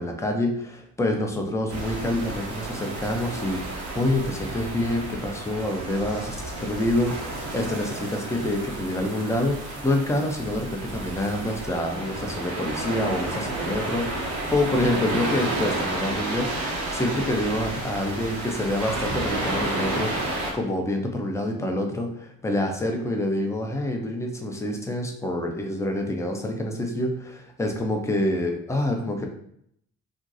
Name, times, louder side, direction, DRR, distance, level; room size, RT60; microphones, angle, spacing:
voice 1, 0.0-29.3, left 1 dB, 10° left, 2 dB, 0.4 m, -27 dB
sound 1, 1.7-20.5, right 2 dB, 70° right, 0.7 m, -31 dB
2.7 x 2.2 x 2.5 m, 0.70 s
figure-of-eight pair, 40°, 40 cm